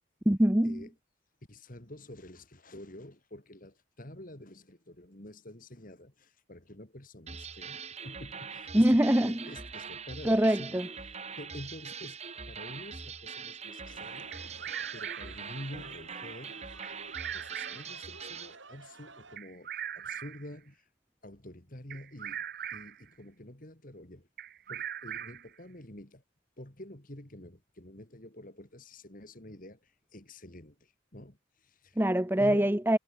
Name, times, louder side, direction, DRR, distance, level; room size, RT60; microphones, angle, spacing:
voice 1, 0.3-0.8 8.7-9.4 10.2-10.9 32.0-33.0, right 1 dB, 10° right, 0.9 m, -24 dB
voice 2, 1.5-12.2 12.5-14.3 14.9-16.6 17.3-20.9 21.2-22.4 22.7-24.3 24.7-26.2 26.6-32.0 32.4-32.7, left 1 dB, 40° left, 2.7 m, -48 dB
sound 1, 7.3-18.6, right 6 dB, 30° right, 2.1 m, -43 dB
sound 2, 13.8-19.4, right 3 dB, 65° right, 5.4 m, -52 dB
Bird vocalization bird call bird song, 14.3-15.5 16.8-17.9 19.4-20.5 21.9-23.0 24.4-25.5, right 9 dB, 45° right, 1.0 m, -40 dB
head